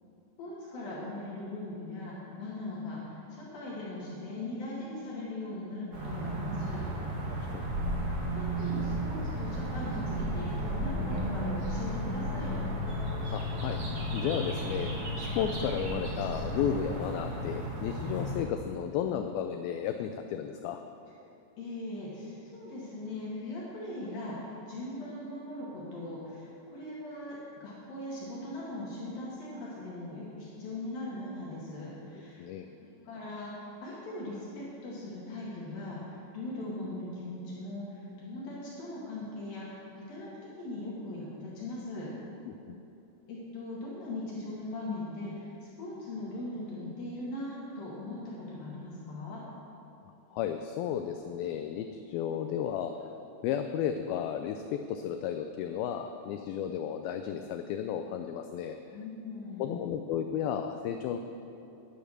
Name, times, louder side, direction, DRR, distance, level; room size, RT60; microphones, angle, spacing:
voice 1, 0.4-6.9 8.3-12.6 21.6-32.4 32.8-42.1 43.3-49.4 58.9-59.7, left 2 dB, 65° left, -7 dB, 3.5 m, -40 dB
sound 1, 5.9-18.4, right 1 dB, 45° right, 2.0 m, -33 dB
voice 2, 13.3-13.8 14.1-20.8 32.4-32.7 42.5-42.8 50.3-52.9 53.4-58.8 59.6-61.2, left 9 dB, 85° left, 7 dB, 2.1 m, -33 dB
10.5 x 9.9 x 6.5 m, 2.8 s
omnidirectional pair, 4.8 m